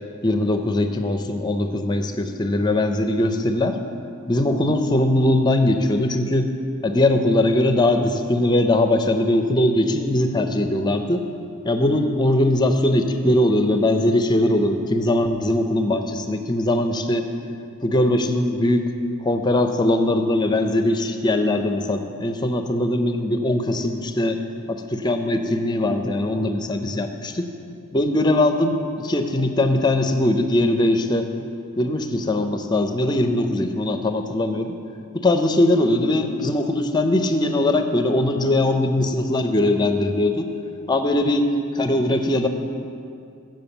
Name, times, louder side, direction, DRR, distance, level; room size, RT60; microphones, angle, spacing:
voice 1, 0.2-3.8 4.3-6.5 6.8-11.3 11.6-17.3 17.8-18.8 19.2-24.4 24.7-27.5 27.9-31.2 31.8-34.7 35.1-40.5 40.9-42.5, left 1 dB, 20° left, 6 dB, 0.5 m, -21 dB
7.8 x 7.0 x 7.0 m, 2.5 s
head